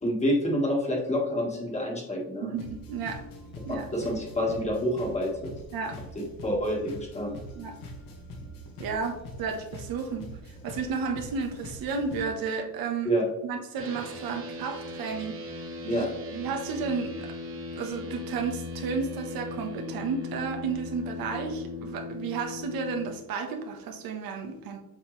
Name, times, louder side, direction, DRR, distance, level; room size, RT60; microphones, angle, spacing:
voice 1, 0.0-2.5 3.7-5.5 6.2-7.4 13.0-13.2 15.9-16.1, equal, 20° left, -1 dB, 1.8 m, -28 dB
voice 2, 2.4-3.2 3.7-3.9 5.7-6.0 7.5-7.7 8.8-10.3 10.6-13.1 13.4-17.3 17.7-24.8, right 5 dB, 85° right, 3 dB, 1.4 m, -32 dB
sound 1, 2.5-12.2, equal, 70° left, 2.0 m, -43 dB
sound 2, 13.8-23.1, left 3 dB, 40° right, 1.5 m, -38 dB
8.1 x 5.8 x 3.3 m, 0.90 s
cardioid pair, 145°, 35 cm